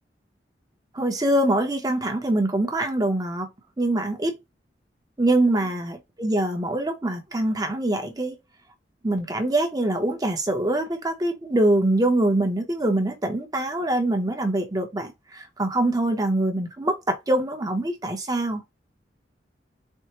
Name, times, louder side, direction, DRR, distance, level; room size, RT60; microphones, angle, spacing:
voice 1, 0.9-3.5 3.8-4.4 5.2-8.4 9.0-18.6, right 1 dB, 20° right, 0.7 m, -24 dB
4.4 x 2.0 x 2.8 m
head